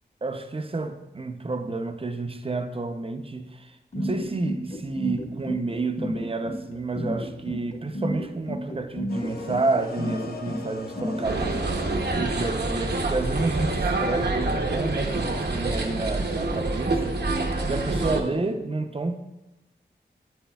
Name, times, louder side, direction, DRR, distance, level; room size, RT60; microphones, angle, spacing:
voice 1, 0.2-19.1, right 3 dB, 30° right, 8 dB, 0.6 m, -30 dB
sound 1, 3.9-11.6, equal, 35° left, 1.3 m, -31 dB
sound 2, 9.1-12.6, left 2 dB, 60° left, 0.8 m, -38 dB
sound 3, 11.2-18.2, right 2 dB, 65° right, 0.8 m, -27 dB
8.6 x 8.6 x 2.3 m, 1.0 s
wide cardioid pair, 85°, 18 cm